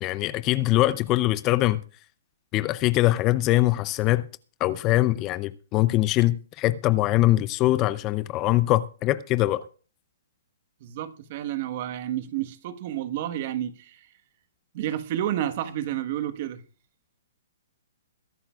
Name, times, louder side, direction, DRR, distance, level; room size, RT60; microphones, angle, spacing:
voice 1, 0.0-1.8 2.5-4.3 4.6-9.6, left 16 dB, 30° left, 0.6 m, -22 dB
voice 2, 10.8-14.1 14.7-16.6, right 12 dB, 45° right, 1.4 m, -30 dB
22.0 x 11.0 x 2.4 m
hypercardioid pair, 135°, 0 cm